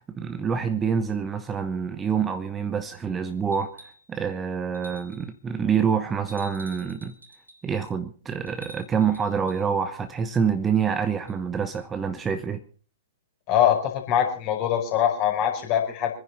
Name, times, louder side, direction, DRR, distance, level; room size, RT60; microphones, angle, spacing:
voice 1, 0.0-7.1 7.6-12.6, right 6 dB, 15° right, 1.0 m, -26 dB
sound 1, 3.5-4.1 4.7-5.3 6.3-7.7 8.5-9.7 11.3-11.4, right 1 dB, 80° right, 3.8 m, -48 dB
voice 2, 13.5-16.1, left 10 dB, 35° left, 5.0 m, -23 dB
26.0 x 10.5 x 4.1 m
figure-of-eight pair, 110°, 0 cm